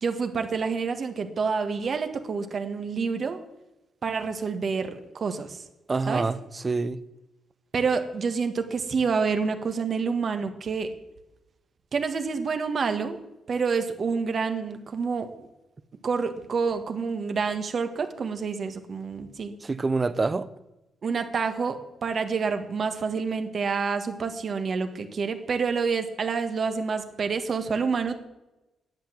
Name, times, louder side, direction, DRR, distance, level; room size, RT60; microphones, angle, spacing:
voice 1, 0.0-3.4 4.0-5.6 6.0-6.3 7.7-10.9 11.9-13.2 13.5-15.5 16.0-19.6 21.0-28.2, right 5 dB, 55° right, 1.5 m, -28 dB
voice 2, 5.9-7.0 19.6-20.5, right 3 dB, 30° right, 0.7 m, -26 dB
10.5 x 8.6 x 7.7 m
cardioid pair, 80°, 0 cm